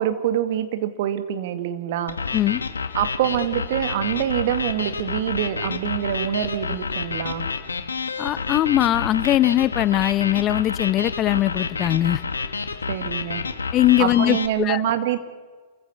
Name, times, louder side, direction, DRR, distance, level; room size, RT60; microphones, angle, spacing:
voice 1, 0.0-2.2 2.9-7.5 12.9-13.4 14.0-15.2, right 11 dB, 60° right, 10 dB, 2.1 m, -25 dB
sound 1, 2.1-14.5, left 4 dB, 90° left, 1.7 m, -29 dB
voice 2, 8.2-12.2 13.7-14.8, left 14 dB, 35° left, 18 dB, 0.7 m, -20 dB
28.0 x 15.5 x 8.3 m, 1.5 s
hypercardioid pair, 110°, 0 cm